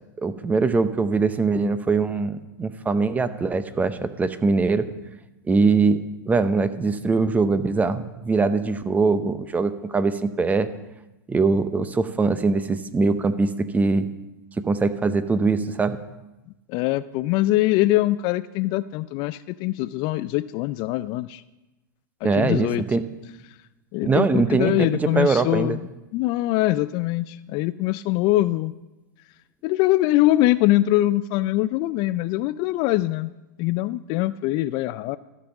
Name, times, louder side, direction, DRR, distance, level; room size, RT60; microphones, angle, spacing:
voice 1, 0.2-4.9 5.5-6.0 6.3-10.7 11.3-14.1 14.7-16.0 22.2-23.0 24.0-25.8, right 4 dB, 15° right, 12 dB, 0.7 m, -22 dB
voice 2, 16.7-21.4 22.2-22.8 23.9-28.7 29.6-33.3 33.6-35.2, left 16 dB, 45° left, 16 dB, 0.3 m, -23 dB
13.5 x 5.3 x 7.1 m, 1.0 s
hypercardioid pair, 110°, 11 cm